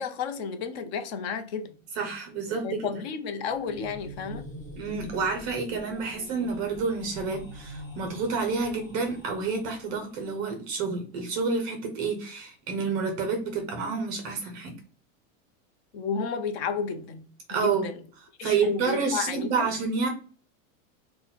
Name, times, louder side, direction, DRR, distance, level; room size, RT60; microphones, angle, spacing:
voice 1, 0.0-1.7 2.6-4.4 15.9-17.2 17.6-17.9 18.4-19.7, left 6 dB, 50° left, 0.7 m, -32 dB
voice 2, 2.0-2.9 4.8-14.8 17.5-17.9 18.4-20.1, right 4 dB, 25° right, 0.4 m, -29 dB
sound 1, 3.5-10.3, equal, 10° left, 1.4 m, -44 dB
4.1 x 2.2 x 4.0 m
supercardioid pair, 170°, 40 cm